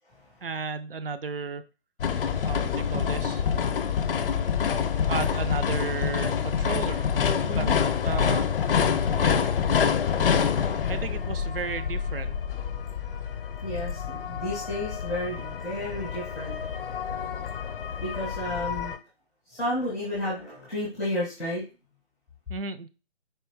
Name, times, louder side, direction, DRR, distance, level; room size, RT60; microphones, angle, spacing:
voice 1, 0.4-1.6 2.4-3.4 5.1-7.1 7.6-7.7 8.0-8.5 9.2-9.5 10.9-12.3 22.5-22.9, right 5 dB, 60° right, 10 dB, 0.6 m, -33 dB
sound 1, 2.0-19.0, left 7 dB, 60° left, 0.6 m, -27 dB
voice 2, 7.4-7.8 13.6-16.6 18.0-18.9 19.5-21.6, left 1 dB, ahead, -11 dB, 0.4 m, -32 dB
4.4 x 2.6 x 3.4 m, 0.31 s
figure-of-eight pair, 140°, 33 cm